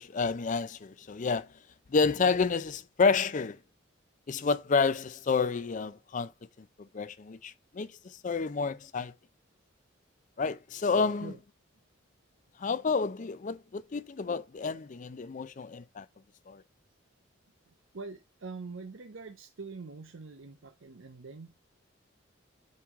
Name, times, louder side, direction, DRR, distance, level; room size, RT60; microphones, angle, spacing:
voice 1, 0.0-1.5 1.9-3.6 4.3-6.3 6.8-9.1 10.4-11.3 12.6-16.1 16.5-16.6, left 4 dB, 40° left, 0.4 m, -29 dB
voice 2, 17.7-21.6, right 4 dB, 70° right, 0.7 m, -44 dB
9.4 x 3.2 x 3.5 m
head